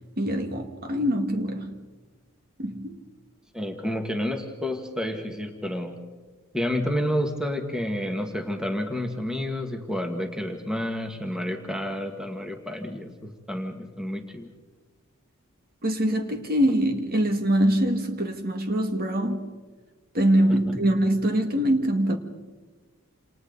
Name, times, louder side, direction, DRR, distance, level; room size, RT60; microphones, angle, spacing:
voice 1, 0.2-1.8 2.6-3.0 15.8-19.5 20.1-22.2, right 1 dB, 45° right, 2.2 m, -24 dB
voice 2, 3.5-6.0 6.5-14.5 20.7-20.8, left 1 dB, 5° right, 1.9 m, -30 dB
28.5 x 28.5 x 4.1 m
head